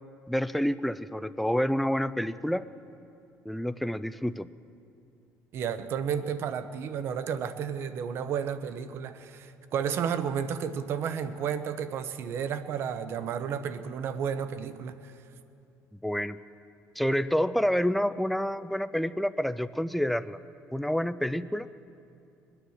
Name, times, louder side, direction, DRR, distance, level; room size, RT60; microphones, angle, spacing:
voice 1, 0.3-2.6 3.5-4.5 15.9-16.4 17.0-20.4 20.7-21.7, equal, ahead, 14 dB, 0.3 m, -28 dB
voice 2, 5.5-15.1, right 7 dB, 50° right, 12 dB, 0.8 m, -32 dB
22.0 x 9.9 x 6.4 m, 2.6 s
cardioid pair, 150°, 5 cm